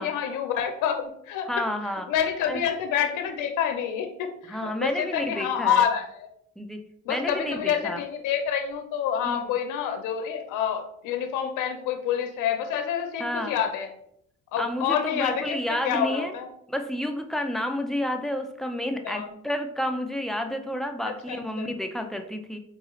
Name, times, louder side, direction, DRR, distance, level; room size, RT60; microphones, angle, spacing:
voice 1, 0.0-1.5 2.1-6.0 7.1-13.9 14.5-16.5 19.0-19.3 21.0-21.7, left 8 dB, 90° left, 5 dB, 0.5 m, -27 dB
voice 2, 1.5-2.1 2.5-2.6 4.5-5.9 6.6-6.8 7.1-8.0 9.2-9.4 13.2-13.6 14.6-16.3 16.7-22.6, left 1 dB, ahead, 5 dB, 0.3 m, -30 dB
4.0 x 2.3 x 2.9 m, 0.73 s
cardioid pair, 90°, 30 cm